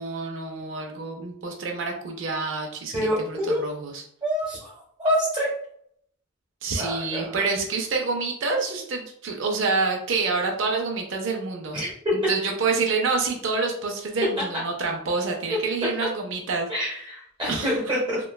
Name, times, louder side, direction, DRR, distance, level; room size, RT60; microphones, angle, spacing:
voice 1, 0.0-4.0 6.6-11.8 12.1-16.7 17.5-17.9, right 4 dB, 60° right, 2 dB, 0.4 m, -27 dB
voice 2, 2.9-3.6 4.2-4.7 5.0-5.5 6.8-7.3 11.7-11.9 15.5-15.6 16.7-18.2, equal, 25° right, -5 dB, 0.8 m, -26 dB
2.9 x 2.2 x 2.2 m, 0.68 s
head